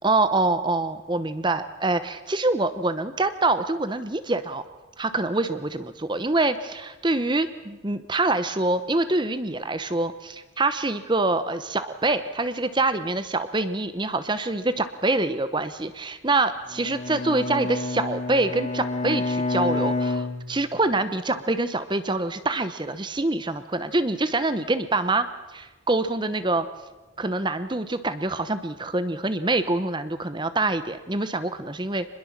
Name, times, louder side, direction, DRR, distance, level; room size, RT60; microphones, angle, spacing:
voice 1, 0.0-4.6 5.0-25.3 25.5-26.7 27.2-32.1, right 2 dB, 25° right, 12 dB, 0.9 m, -25 dB
Bowed string instrument, 16.7-21.1, left 3 dB, 35° left, 1.7 m, -29 dB
25.5 x 21.5 x 7.3 m, 1.2 s
head